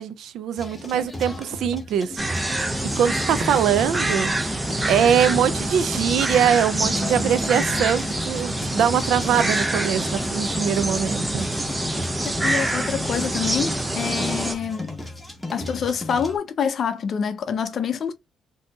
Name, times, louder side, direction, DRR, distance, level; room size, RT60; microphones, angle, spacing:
voice 1, 0.0-2.2 2.8-4.3 4.8-11.5, right 8 dB, 80° right, 0.3 m, -22 dB
sound 1, 0.6-16.4, left 2 dB, 10° left, 1.1 m, -36 dB
sound 2, 2.2-14.5, right 1 dB, 15° right, 0.6 m, -26 dB
voice 2, 12.2-14.9 15.5-18.1, left 7 dB, 55° left, 0.4 m, -26 dB
3.8 x 2.7 x 2.3 m
cardioid pair, 90°, 0 cm